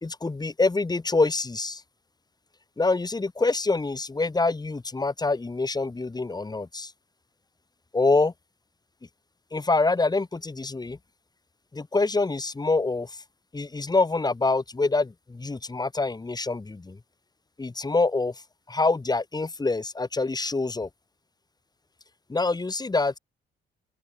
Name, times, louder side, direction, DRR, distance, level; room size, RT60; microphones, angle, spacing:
voice 1, 0.0-1.8 2.8-6.9 7.9-8.3 9.5-11.0 11.7-13.2 13.5-17.0 17.6-18.3 18.7-20.9 22.3-23.2, left 3 dB, 20° left, 2.4 m, -25 dB
open air
cardioid pair, 90°, 20 cm